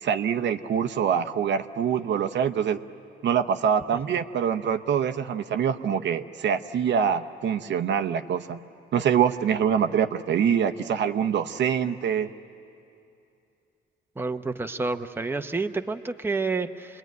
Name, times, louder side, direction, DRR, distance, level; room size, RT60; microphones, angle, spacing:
voice 1, 0.0-2.8 3.2-8.6 8.9-12.3, right 8 dB, 65° right, 7 dB, 0.8 m, -25 dB
voice 2, 14.2-17.0, right 3 dB, 10° right, 6 dB, 0.8 m, -29 dB
27.5 x 21.0 x 9.4 m, 2.7 s
cardioid pair, 90°, 20 cm